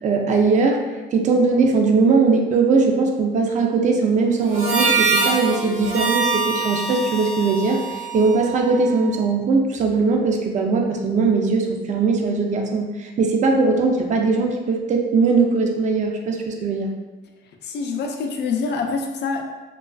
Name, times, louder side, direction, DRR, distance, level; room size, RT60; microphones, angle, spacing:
voice 1, 0.0-0.9 1.1-16.9, right 4 dB, 40° right, 2 dB, 0.4 m, -20 dB
Harmonica, 4.5-9.1, right 4 dB, 90° right, 0.7 m, -24 dB
voice 2, 17.4-19.4, left 4 dB, 60° left, 3 dB, 0.4 m, -26 dB
2.4 x 2.3 x 2.3 m, 1.2 s
cardioid pair, 90°, 20 cm